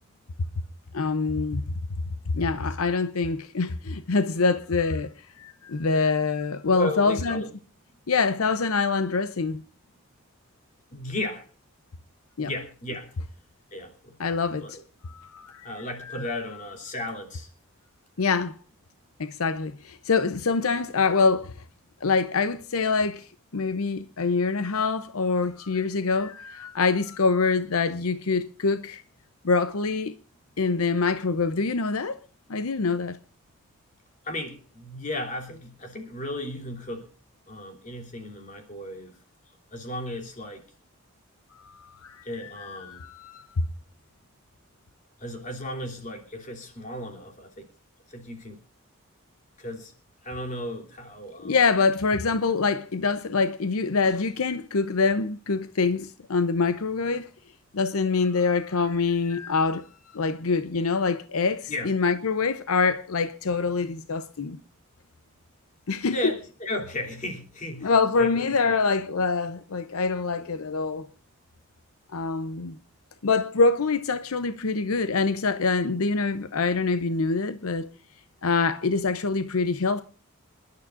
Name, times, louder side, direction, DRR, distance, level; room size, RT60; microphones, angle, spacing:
voice 1, 0.9-1.6 2.3-5.1 5.4-7.4 8.1-9.6 12.4-12.5 14.2-14.8 15.0-15.7 16.1-16.3 18.2-18.6 19.2-21.5 22.0-29.0 29.4-30.1 30.6-32.2 32.5-33.2 41.6-42.2 42.6-43.5 51.4-57.3 57.7-59.9 60.1-64.6 65.9-66.2 67.8-71.1 72.1-72.8 73.2-77.9 78.4-80.0, left 4 dB, 80° left, 0.7 m, -25 dB
voice 2, 6.7-7.5 10.9-11.5 12.4-13.1 13.7-14.1 14.6-14.8 15.6-17.5 34.2-37.1 37.5-39.2 39.7-40.6 42.2-43.1 45.2-47.7 48.1-48.6 49.6-49.9 50.2-51.6 61.7-61.9 66.1-68.8 70.3-70.4, left 1 dB, 35° left, 3.1 m, -35 dB
27.5 x 11.5 x 2.5 m
head